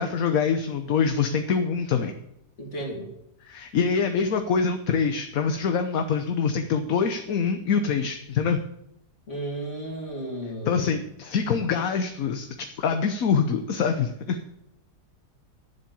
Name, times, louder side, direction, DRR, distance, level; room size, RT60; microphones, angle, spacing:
voice 1, 0.0-2.1 3.4-8.6 10.7-12.5 12.8-14.4, left 6 dB, 65° left, 6 dB, 1.3 m, -25 dB
voice 2, 2.6-3.1 9.3-11.0, right 1 dB, 45° left, 0 dB, 3.4 m, -34 dB
11.5 x 7.5 x 7.1 m, 0.80 s
omnidirectional pair, 1.7 m